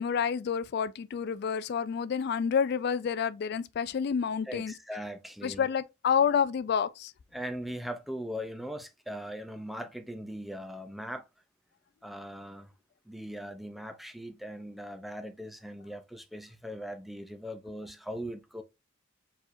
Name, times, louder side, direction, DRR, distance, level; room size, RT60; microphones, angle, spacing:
voice 1, 0.0-4.7 5.4-7.1, left 7 dB, 55° left, 0.3 m, -29 dB
voice 2, 4.4-5.7 7.3-11.3 12.0-12.7 13.1-18.6, equal, ahead, 0.5 m, -40 dB
4.6 x 4.2 x 2.6 m
head